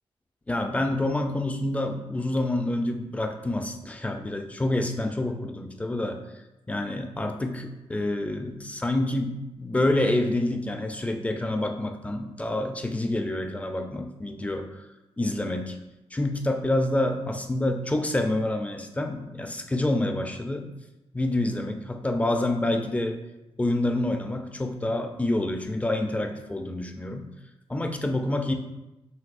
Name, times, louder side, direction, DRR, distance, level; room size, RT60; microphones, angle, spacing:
voice 1, 0.5-6.2 6.7-14.8 15.2-15.8 16.1-20.7 21.1-23.2 23.6-27.3 27.7-28.5, left 1 dB, 15° left, 5 dB, 0.4 m, -27 dB
5.9 x 2.7 x 2.4 m, 0.94 s
wide cardioid pair, 110°, 10 cm